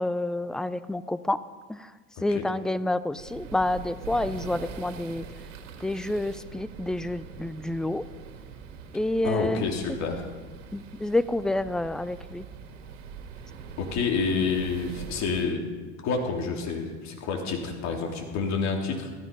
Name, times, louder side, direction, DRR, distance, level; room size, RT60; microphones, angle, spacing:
voice 1, 0.0-1.4 1.7-1.8 2.2-5.2 5.8-8.0 8.9-9.7 10.7-12.4, left 1 dB, ahead, 15 dB, 0.4 m, -28 dB
voice 2, 2.2-2.5 9.2-10.2 13.8-15.7 16.0-19.1, left 4 dB, 45° left, 1 dB, 3.6 m, -28 dB
sound 1, 3.2-15.4, right 6 dB, 85° right, 2.2 m, -43 dB
15.5 x 14.0 x 5.4 m, 1.4 s
supercardioid pair, 110°, 37 cm